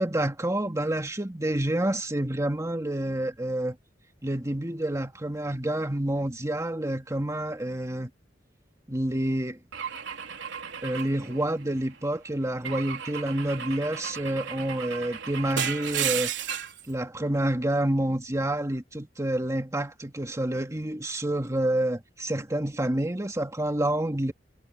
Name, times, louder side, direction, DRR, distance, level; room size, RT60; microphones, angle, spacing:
voice 1, 0.0-3.8 4.2-8.1 8.9-9.6 10.8-16.3 16.9-24.3, right 1 dB, 15° right, 2.2 m, -28 dB
Car / Engine / Glass, 9.7-11.9 12.6-16.8, right 8 dB, 70° right, 4.1 m, -34 dB
head